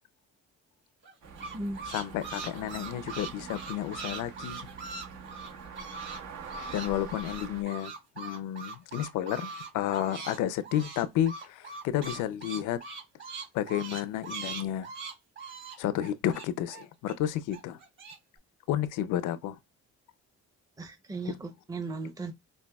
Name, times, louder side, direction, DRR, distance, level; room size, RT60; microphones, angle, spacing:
sound 1, 1.0-6.2 6.4-10.4 10.6-17.1 17.5-18.2, right 4 dB, 40° right, 2.7 m, -41 dB
sound 2, 1.2-7.6, right 5 dB, 70° right, 1.4 m, -45 dB
voice 1, 1.9-4.6 6.7-12.8 13.5-14.9 15.8-17.8 18.7-19.6 21.3-21.4, left 12 dB, 90° left, 0.5 m, -31 dB
voice 2, 20.8-22.3, right 3 dB, 10° right, 0.6 m, -36 dB
5.3 x 2.6 x 2.2 m
cardioid pair, 90°, 30 cm